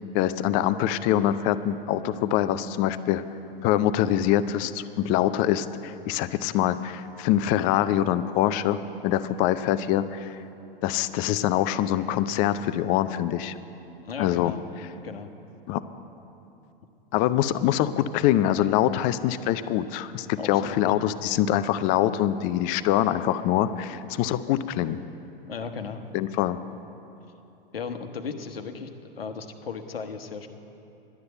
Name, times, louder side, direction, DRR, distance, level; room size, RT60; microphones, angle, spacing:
voice 1, 0.1-3.2 3.6-8.8 9.0-10.4 10.8-13.5 14.2-14.5 15.7-15.8 17.1-25.0 26.1-26.6, left 12 dB, 30° left, 13 dB, 0.4 m, -24 dB
voice 2, 14.0-14.6 15.0-15.3 20.4-20.8 25.5-26.0 27.7-30.5, left 5 dB, 75° left, 6 dB, 1.0 m, -36 dB
11.5 x 9.5 x 7.8 m, 2.8 s
figure-of-eight pair, 100°, 29 cm